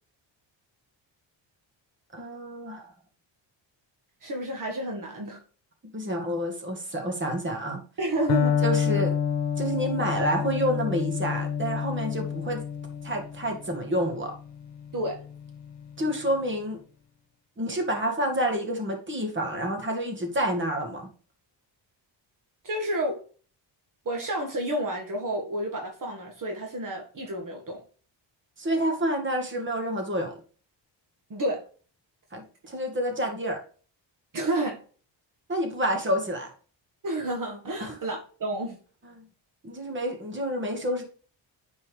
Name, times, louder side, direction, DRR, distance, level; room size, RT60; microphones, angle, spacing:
voice 1, 2.1-2.9 5.9-7.8 8.6-9.1 9.6-12.6 13.0-14.3 16.0-16.8 17.6-21.1 28.6-30.3 32.3-33.6 35.5-36.5 37.8-37.9 39.0-39.2 39.6-41.0, equal, 25° right, 2.1 m, -28 dB
voice 2, 4.2-5.4 8.0-8.6 14.9-15.2 22.6-23.2 24.0-27.8 31.3-31.6 34.3-34.8 37.0-38.8, right 1 dB, 45° right, 1.7 m, -30 dB
Electric guitar, 8.3-16.1, left 7 dB, 65° left, 1.2 m, -29 dB
9.7 x 4.5 x 3.3 m
cardioid pair, 125°, 45 cm